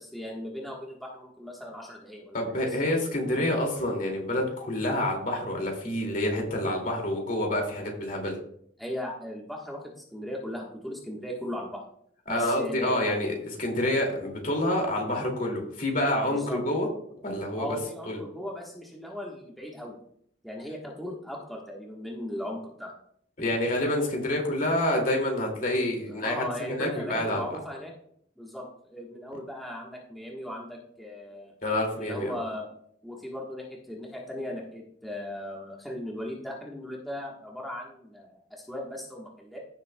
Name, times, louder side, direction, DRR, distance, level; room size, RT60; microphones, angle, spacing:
voice 1, 0.0-2.8 8.8-11.8 12.3-13.1 16.2-16.6 17.6-20.0 20.4-22.9 26.1-27.9 28.4-31.5 31.9-32.7 33.0-39.6, equal, ahead, -3 dB, 1.3 m, -38 dB
voice 2, 2.3-8.4 12.3-16.9 17.2-17.8 18.1-18.2 23.4-27.6 31.6-32.3, left 1 dB, 50° left, 1 dB, 2.4 m, -28 dB
15.5 x 7.2 x 2.3 m, 0.68 s
head